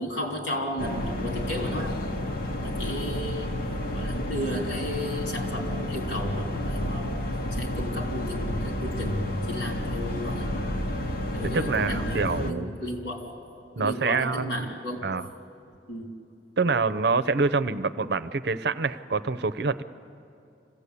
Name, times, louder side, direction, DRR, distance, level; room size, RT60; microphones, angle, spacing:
voice 1, 0.0-2.0 2.6-3.5 3.9-7.2 7.5-10.5 11.3-13.2 13.8-15.1 15.9-16.1, equal, 85° left, 1 dB, 3.7 m, -33 dB
sound 1, 0.8-12.5, left 1 dB, 55° left, 1.1 m, -31 dB
voice 2, 11.4-12.7 13.8-14.7 15.0-15.3 16.6-19.8, right 4 dB, 65° right, 14 dB, 0.7 m, -26 dB
26.0 x 16.0 x 8.4 m, 2.6 s
head